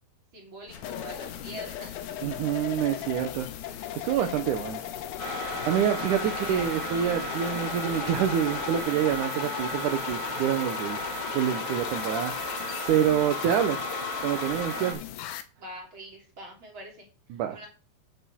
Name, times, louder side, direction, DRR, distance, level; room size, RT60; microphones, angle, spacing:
voice 1, 0.3-2.0 4.1-4.8 13.2-13.5 15.6-17.7, equal, 35° right, 1 dB, 2.9 m, -45 dB
sound 1, 0.7-8.8, left 6 dB, 60° left, 2.6 m, -47 dB
sound 2, 0.8-15.4, left 11 dB, 80° left, 2.7 m, -38 dB
voice 2, 2.2-3.5 4.0-4.8 5.3-11.0 11.3-13.8 14.2-15.0 17.3-17.7, right 9 dB, 75° right, 7 dB, 1.9 m, -27 dB
sound 3, 5.2-14.9, equal, 40° left, 2.0 m, -34 dB
9.2 x 7.9 x 4.4 m, 0.34 s
omnidirectional pair, 4.6 m